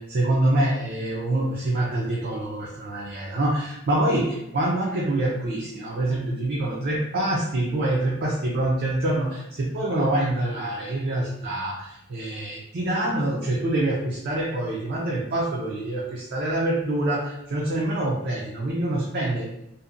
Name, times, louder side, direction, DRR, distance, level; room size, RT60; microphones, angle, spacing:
voice 1, 0.0-19.5, right 1 dB, 55° right, -3 dB, 0.4 m, -25 dB
2.7 x 2.1 x 2.4 m, 0.80 s
head